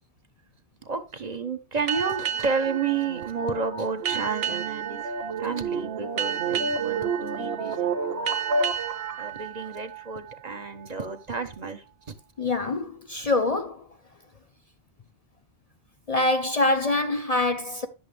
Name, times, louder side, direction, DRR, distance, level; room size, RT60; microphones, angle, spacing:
voice 1, 0.8-5.1 5.4-8.4 9.2-11.8, right 5 dB, 40° right, 1.0 m, -31 dB
sound 1, 1.9-11.0, right 9 dB, 60° right, 0.7 m, -33 dB
sound 2, 2.0-9.3, right 4 dB, 85° right, 1.5 m, -31 dB
voice 2, 12.4-13.8 16.1-17.9, left 2 dB, 45° left, 0.6 m, -25 dB
10.5 x 6.8 x 3.3 m
omnidirectional pair, 1.1 m